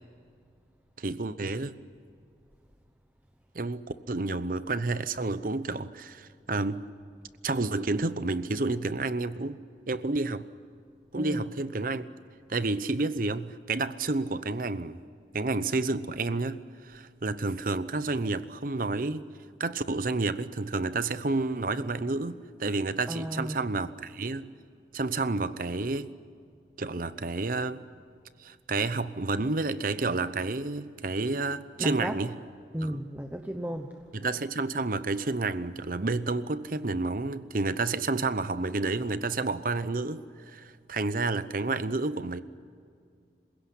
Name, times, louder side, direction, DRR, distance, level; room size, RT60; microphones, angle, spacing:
voice 1, 1.0-1.7 3.5-6.8 7.4-9.6 9.9-10.5 11.1-12.0 12.5-15.0 15.3-19.2 19.6-24.5 24.9-26.1 26.8-27.8 28.4-32.3 32.8-33.0 34.1-42.4, right 3 dB, 50° right, 14 dB, 0.8 m, -30 dB
voice 2, 23.1-23.7 31.8-32.1 32.7-34.0, equal, 10° right, 5 dB, 0.9 m, -34 dB
27.0 x 16.5 x 10.0 m, 2.3 s
head